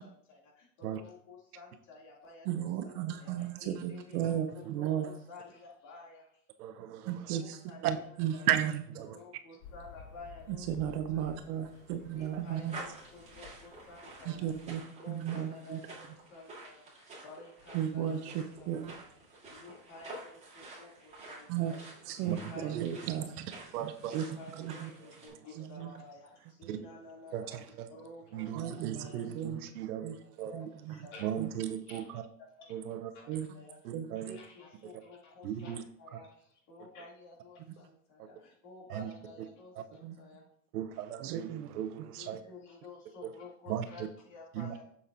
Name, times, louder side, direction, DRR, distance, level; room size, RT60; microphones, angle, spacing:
voice 1, 0.0-6.4 7.2-8.6 9.0-11.3 12.1-14.5 15.0-19.1 19.5-21.8 22.2-29.3 30.2-31.5 31.9-33.8 34.2-40.5 40.9-41.0 42.2-44.8, left 3 dB, 35° left, -2 dB, 2.6 m, -52 dB
voice 2, 2.5-5.1 7.0-8.8 10.5-12.8 14.3-14.8 15.1-15.8 17.7-19.0 21.5-23.3 23.8-24.3 24.6-24.9 25.6-26.0 28.5-29.6 30.0-30.2 30.5-31.0 31.4-31.5 33.3-33.5 33.9-34.1 40.0-40.2 41.2-41.7 42.0-42.1, right 10 dB, 45° right, 8 dB, 0.6 m, -35 dB
voice 3, 6.6-7.4 7.8-7.9 8.5-8.7 9.0-9.1 22.3-22.4 22.7-22.9 23.7-24.1 26.7-26.8 27.3-27.9 28.3-30.1 30.4-30.5 31.2-32.0 32.7-33.1 33.8-34.4 35.4-35.8 38.9-39.1 40.7-42.4 43.7-43.8 44.5-44.7, right 11 dB, 70° right, 10 dB, 0.8 m, -35 dB
sound 1, 9.6-14.8, left 8 dB, 55° left, 1.5 m, -54 dB
sound 2, 11.4-25.3, right 2 dB, 15° right, 3.1 m, -50 dB
7.0 x 6.9 x 2.6 m, 0.67 s
hypercardioid pair, 125°, 47 cm